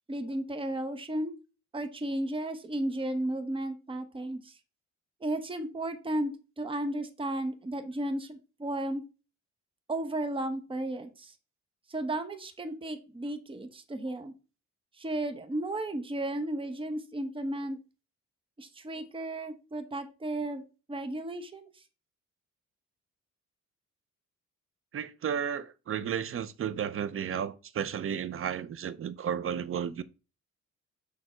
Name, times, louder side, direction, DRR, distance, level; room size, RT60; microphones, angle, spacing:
voice 1, 0.1-1.3 1.7-4.6 5.2-9.0 9.9-11.3 11.9-14.3 15.0-17.8 18.6-20.6 20.9-21.8, right 1 dB, 15° right, 1.0 m, -34 dB
voice 2, 24.9-30.0, right 8 dB, 45° right, 0.7 m, -33 dB
6.4 x 3.5 x 5.1 m
cardioid pair, 90°, 30 cm